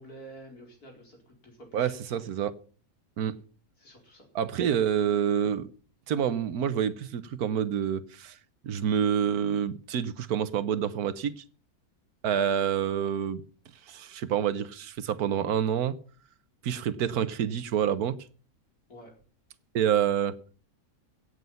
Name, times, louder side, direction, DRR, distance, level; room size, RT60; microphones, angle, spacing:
voice 1, 0.0-2.2 3.8-4.3 18.9-19.1, right 1 dB, 80° left, 1 dB, 4.9 m, -49 dB
voice 2, 1.7-2.5 3.2-3.4 4.3-5.7 6.1-8.4 8.6-11.4 12.2-13.4 13.9-15.9 16.6-18.2 19.7-20.3, right 8 dB, 85° right, 15 dB, 1.4 m, -27 dB
17.5 x 8.1 x 5.6 m, 0.41 s
omnidirectional pair, 1.6 m